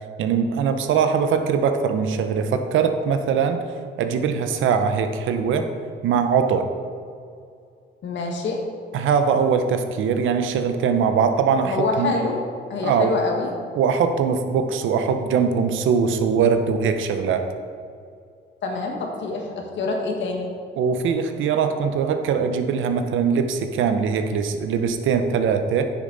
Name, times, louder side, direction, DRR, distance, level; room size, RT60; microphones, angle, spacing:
voice 1, 0.2-3.6 4.0-5.7 6.0-6.7 8.9-12.1 12.8-13.1 13.8-17.5 20.8-25.9, right 6 dB, 80° right, 7 dB, 0.8 m, -21 dB
voice 2, 8.0-8.6 11.6-13.5 18.6-20.5, left 3 dB, 65° left, 1 dB, 1.7 m, -26 dB
9.7 x 6.4 x 4.1 m, 2.3 s
cardioid pair, 90°, 20 cm